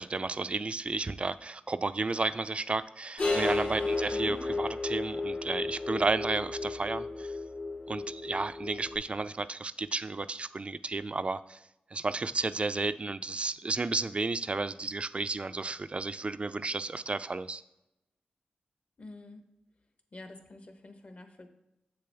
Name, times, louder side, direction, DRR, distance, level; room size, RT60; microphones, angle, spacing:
voice 1, 0.0-7.3 7.9-11.6 11.9-17.6, right 3 dB, 40° right, 14 dB, 0.3 m, -32 dB
sound 1, 3.2-9.0, left 3 dB, 85° left, 2.8 m, -33 dB
voice 2, 4.1-4.5 19.0-19.4 20.1-21.5, left 2 dB, 50° left, 7 dB, 1.0 m, -47 dB
7.7 x 6.8 x 3.4 m, 0.89 s
wide cardioid pair, 65°, 3 cm